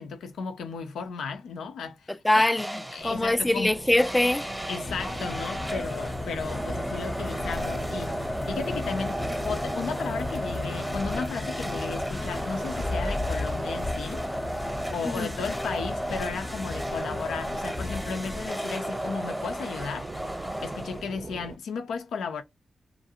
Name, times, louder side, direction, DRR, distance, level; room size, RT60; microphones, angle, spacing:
voice 1, 0.0-2.5 2.9-3.7 4.7-14.2 14.9-20.1 20.6-22.4, left 5 dB, 85° left, 0.6 m, -35 dB
voice 2, 2.1-4.5 15.1-15.3, left 1 dB, 15° left, 0.3 m, -23 dB
sound 1, 2.6-3.2 4.0-21.3, equal, ahead, 0.7 m, -34 dB
sound 2, 3.0-21.6, right 3 dB, 40° right, 0.5 m, -42 dB
sound 3, 4.8-18.5, left 3 dB, 45° left, 0.7 m, -36 dB
2.5 x 2.2 x 2.8 m
supercardioid pair, 45°, 0 cm